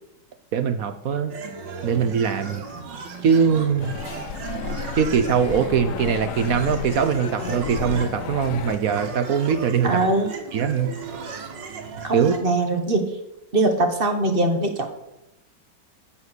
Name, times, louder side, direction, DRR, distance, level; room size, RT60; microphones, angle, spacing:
voice 1, 0.5-1.3 1.8-2.6 3.2-3.9 5.0-9.9 10.5-10.9 12.1-12.3, right 7 dB, 60° right, 10 dB, 1.1 m, -22 dB
sound 1, 1.3-12.4, right 5 dB, 85° right, 2.3 m, -35 dB
sound 2, 3.8-8.8, left 8 dB, 70° left, 0.8 m, -32 dB
voice 2, 9.8-10.3 12.0-13.2 13.5-14.9, right 2 dB, 30° right, 5 dB, 1.7 m, -22 dB
9.7 x 8.8 x 8.2 m, 0.87 s
omnidirectional pair, 1.9 m